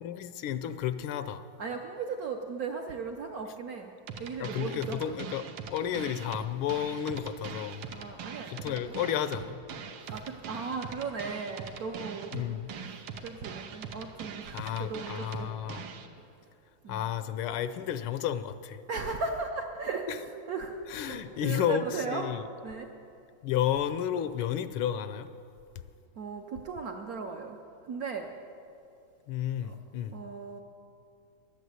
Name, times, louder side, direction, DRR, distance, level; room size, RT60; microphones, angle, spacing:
voice 1, 0.0-1.4 4.4-7.9 8.5-9.6 12.3-12.7 14.5-15.9 16.9-18.8 20.1-20.2 20.9-22.5 23.4-25.3 29.3-30.1, left 10 dB, 85° left, 12 dB, 1.5 m, -32 dB
voice 2, 1.6-3.9 4.2-5.2 7.9-8.8 10.1-12.6 13.2-15.5 16.8-17.1 18.9-22.3 22.6-22.9 26.2-27.6 27.9-28.3 29.6-29.7 30.1-30.6, right 4 dB, 65° right, 3 dB, 0.9 m, -37 dB
sound 1, 4.1-16.1, right 6 dB, 85° right, 1.7 m, -42 dB
11.5 x 9.4 x 8.0 m, 2.5 s
omnidirectional pair, 2.3 m